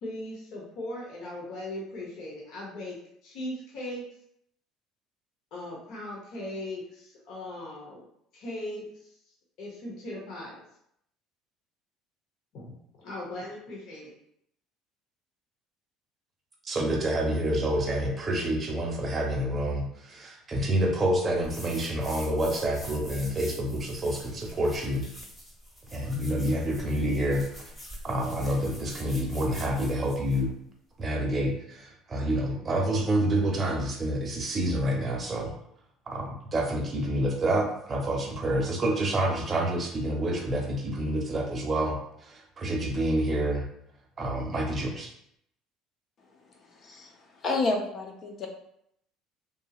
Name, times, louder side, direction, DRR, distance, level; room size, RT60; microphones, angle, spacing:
voice 1, 0.0-3.0 3.2-4.0 5.5-8.0 8.3-8.9 9.6-10.6 12.5-14.1, left 1 dB, 65° left, -3 dB, 0.9 m, -38 dB
voice 2, 16.6-25.1 25.9-27.6 28.0-30.5 31.0-35.5 36.1-43.6 44.2-45.1, right 1 dB, 30° right, 0 dB, 0.7 m, -28 dB
sound 1, 21.4-30.5, equal, 20° left, 1.2 m, -45 dB
voice 3, 46.2-48.5, left 3 dB, 45° left, 2 dB, 0.6 m, -31 dB
2.8 x 2.6 x 2.4 m, 0.73 s
supercardioid pair, 95°, 0 cm